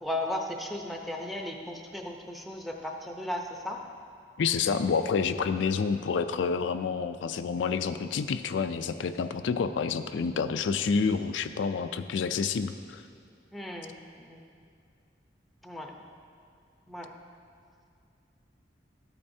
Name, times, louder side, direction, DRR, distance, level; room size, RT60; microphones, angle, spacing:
voice 1, 0.0-3.8 12.1-12.2 13.5-13.9 14.2-14.4 15.6-15.9 16.9-17.1, left 1 dB, ahead, 2 dB, 0.6 m, -36 dB
voice 2, 4.4-13.0, left 5 dB, 85° left, 9 dB, 0.4 m, -28 dB
13.5 x 8.7 x 2.7 m, 2.4 s
head